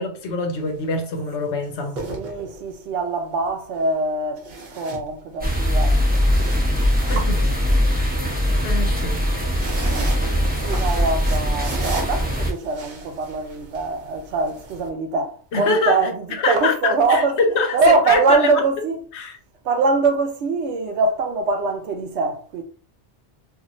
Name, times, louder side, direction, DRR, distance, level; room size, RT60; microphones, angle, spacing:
voice 1, 0.0-2.0 7.1-7.3 8.6-9.2 15.5-16.0 16.4-18.6 19.1-19.3, left 3 dB, 75° left, 1.0 m, -24 dB
sound 1, 0.5-0.8 1.7-2.9 4.4-5.6 6.0-8.1 9.2-14.9, right 3 dB, 45° right, 0.8 m, -36 dB
voice 2, 2.0-4.5 4.7-6.2 7.2-7.3 10.6-17.4 17.7-19.0 19.6-22.6, right 3 dB, 75° right, 0.9 m, -23 dB
sound 2, 5.4-12.5, equal, 10° right, 0.7 m, -21 dB
3.0 x 2.6 x 2.6 m
omnidirectional pair, 1.2 m